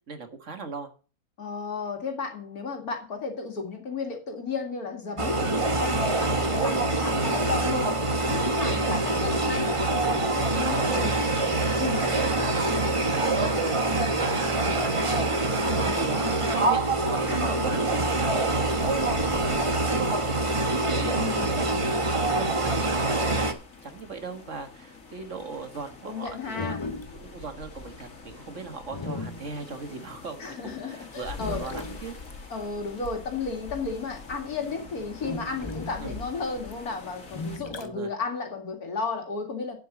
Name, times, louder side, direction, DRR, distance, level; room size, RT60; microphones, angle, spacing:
voice 1, 0.1-0.9 6.3-6.5 10.1-11.1 11.6-16.8 17.1-18.5 18.8-20.4 20.7-23.5 23.8-26.8 27.1-32.2 36.0-36.2 37.8-38.1, right 4 dB, 55° right, 7 dB, 1.8 m, -38 dB
voice 2, 1.4-11.3 11.8-12.0 17.3-17.8 21.0-21.5 26.0-26.8 30.4-31.6 32.5-39.8, left 4 dB, 80° left, 3 dB, 2.7 m, -33 dB
sound 1, 5.2-23.5, right 2 dB, 25° right, 1.1 m, -25 dB
sound 2, 18.5-37.6, left 3 dB, 60° left, 2.6 m, -45 dB
sound 3, 19.3-23.2 23.6-30.5 30.9-34.4 34.7-37.9, left 3 dB, 30° left, 0.5 m, -39 dB
9.2 x 7.9 x 6.1 m, 0.37 s
omnidirectional pair, 1.6 m